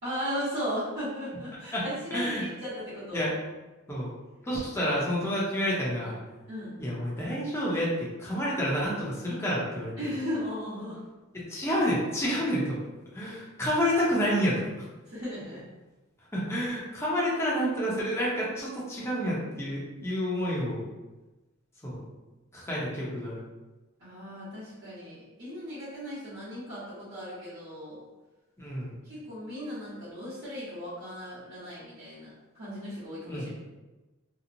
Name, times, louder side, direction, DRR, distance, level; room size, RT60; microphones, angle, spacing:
voice 1, 0.0-3.3 6.5-6.7 10.0-11.0 15.1-15.6 24.0-28.0 29.0-33.5, equal, 60° right, -14 dB, 1.0 m, -36 dB
voice 2, 2.1-2.4 3.1-3.3 3.9-4.1 4.4-6.2 6.8-10.1 11.3-12.8 13.1-14.9 16.3-20.9 21.8-22.0 22.5-23.4 28.6-28.9 33.3-33.5, equal, 15° left, -6 dB, 0.6 m, -29 dB
2.9 x 2.0 x 2.5 m, 1.1 s
head